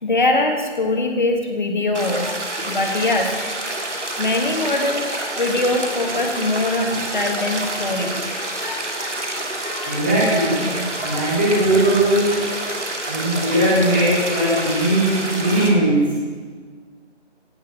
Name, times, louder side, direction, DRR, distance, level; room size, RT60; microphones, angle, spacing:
voice 1, 0.0-3.6 4.2-10.0 11.0-11.3, left 2 dB, 40° left, 3 dB, 1.7 m, -23 dB
sound 1, 1.9-15.7, right 1 dB, 75° right, 2.8 m, -28 dB
voice 2, 9.8-10.7 11.0-12.4 13.1-16.0, right 1 dB, 10° right, -7 dB, 1.6 m, -19 dB
17.0 x 7.2 x 7.4 m, 1.5 s
figure-of-eight pair, 165°, 36 cm